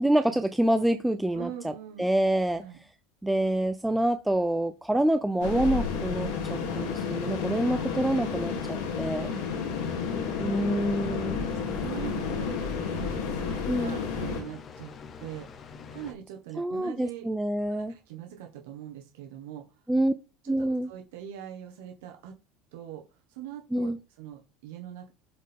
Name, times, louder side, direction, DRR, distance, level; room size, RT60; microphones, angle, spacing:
voice 1, 0.0-1.7 2.0-2.6 3.2-9.3 10.4-11.4 13.7-14.0 16.6-17.9 19.9-20.1 20.5-20.9 23.7-24.0, right 1 dB, 5° right, 9 dB, 0.4 m, -26 dB
voice 2, 1.3-2.1 2.6-2.8 9.2-9.8 11.4-14.9 15.2-17.3 17.7-19.8 20.4-22.3 22.7-25.1, right 10 dB, 90° right, 3 dB, 1.3 m, -42 dB
sound 1, 5.4-14.4, left 6 dB, 85° left, 2.7 m, -31 dB
sound 2, 9.3-16.1, left 6 dB, 30° left, 0.9 m, -46 dB
8.3 x 4.4 x 3.6 m, 0.30 s
cardioid pair, 150°, 0 cm